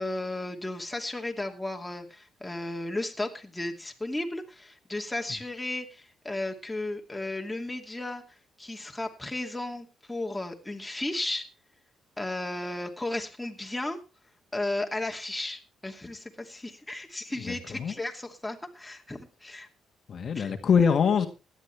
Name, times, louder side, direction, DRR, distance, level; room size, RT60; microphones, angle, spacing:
voice 1, 0.0-8.2 8.6-11.5 12.2-14.0 14.5-19.7 20.3-20.5, left 2 dB, 10° left, 2.6 m, -34 dB
voice 2, 17.5-17.9 20.1-21.3, left 6 dB, 55° left, 1.7 m, -24 dB
17.5 x 11.5 x 3.4 m
cardioid pair, 90°, 0 cm